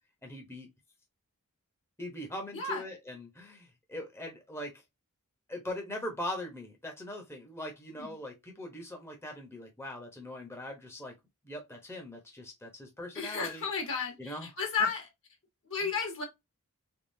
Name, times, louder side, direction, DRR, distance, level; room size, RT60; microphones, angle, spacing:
voice 1, 0.2-0.7 2.0-4.8 5.5-11.1 11.4-13.6 14.2-14.5 14.8-14.9, left 1 dB, 10° left, 0.8 m, -41 dB
voice 2, 13.1-15.0 15.6-16.3, left 5 dB, 60° left, 1.6 m, -33 dB
3.6 x 3.5 x 2.6 m
head